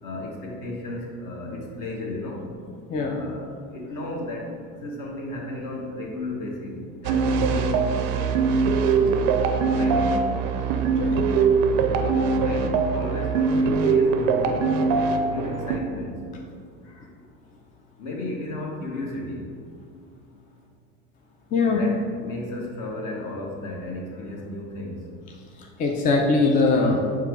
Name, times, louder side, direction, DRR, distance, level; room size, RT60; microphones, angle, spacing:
voice 1, 0.0-2.4 3.0-8.6 9.0-10.3 11.9-16.2 16.8-17.1 18.0-19.4 21.6-25.0, left 1 dB, 50° left, -1 dB, 1.2 m, -34 dB
sound 1, 7.0-15.8, right 5 dB, 70° right, 0.5 m, -22 dB
voice 2, 21.5-21.8 25.6-27.2, left 3 dB, 20° left, 0 dB, 0.4 m, -21 dB
4.7 x 2.3 x 4.7 m, 2.2 s
hypercardioid pair, 80°, 41 cm